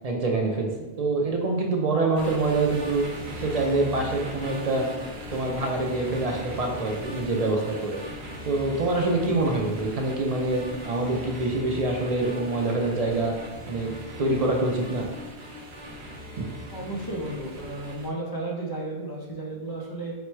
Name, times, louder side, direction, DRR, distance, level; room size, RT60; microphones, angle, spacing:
voice 1, 0.0-3.0 3.4-4.9 5.3-8.0 8.5-13.4 13.7-13.9 14.2-15.1, right 2 dB, 50° right, 0 dB, 0.5 m, -25 dB
sound 1, 2.2-18.1, equal, 75° right, 0.9 m, -39 dB
voice 2, 16.7-20.1, right 2 dB, 30° left, -3 dB, 0.5 m, -33 dB
4.0 x 2.2 x 4.5 m, 1.1 s
omnidirectional pair, 1.1 m